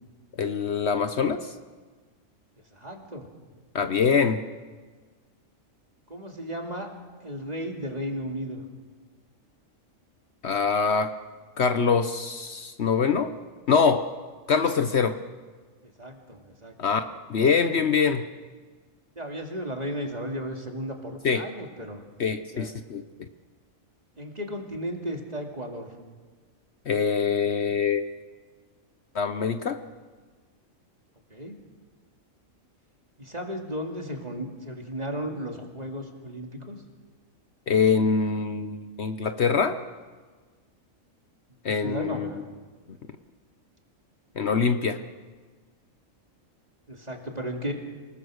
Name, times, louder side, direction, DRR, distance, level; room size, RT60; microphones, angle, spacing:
voice 1, 0.4-1.5 3.7-4.4 10.4-11.1 11.6-13.3 13.7-14.1 14.5-15.2 16.8-17.0 17.3-18.2 21.2-21.4 22.2-23.0 26.9-28.0 29.1-29.8 37.7-39.8 41.6-42.3 44.4-45.0, left 5 dB, 60° left, 9 dB, 1.1 m, -24 dB
voice 2, 2.7-3.3 6.1-6.9 7.2-8.6 15.8-16.7 19.2-22.0 22.5-22.7 24.2-25.9 31.3-31.6 33.2-36.8 41.7-42.4 46.9-47.7, equal, 30° right, 2 dB, 2.7 m, -34 dB
28.0 x 19.0 x 6.4 m, 1.4 s
omnidirectional pair, 1.4 m